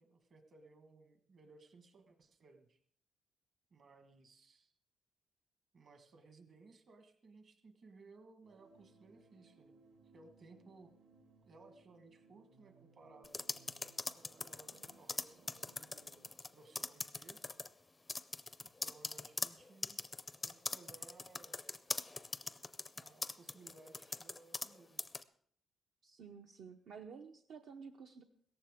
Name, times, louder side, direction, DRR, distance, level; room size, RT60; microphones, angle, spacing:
voice 1, 0.0-2.8 3.7-4.7 5.7-9.8 10.1-10.9 11.4-13.4 14.1-17.4 18.6-20.0 20.4-21.6 22.9-25.0, right 3 dB, 40° right, 7 dB, 1.4 m, -61 dB
sound 1, 8.4-16.3, right 4 dB, 85° right, 1.9 m, -66 dB
sound 2, 13.2-16.5 16.7-17.7 18.1-24.7 25.0-25.2, left 3 dB, 15° left, 0.4 m, -41 dB
voice 2, 26.0-28.2, right 6 dB, 65° right, 5 dB, 0.7 m, -52 dB
17.0 x 14.5 x 3.6 m, 0.63 s
cardioid pair, 165°, 0 cm